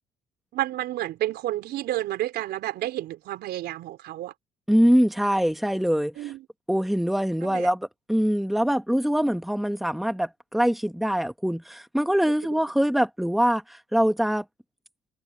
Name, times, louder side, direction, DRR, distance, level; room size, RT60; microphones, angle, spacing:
voice 1, 0.5-4.3 6.2-6.5 7.4-7.7, right 14 dB, 75° right, 4.4 m, -30 dB
voice 2, 4.7-6.1 6.7-14.4, equal, ahead, 1.7 m, -23 dB
cardioid pair, 110°, 17 cm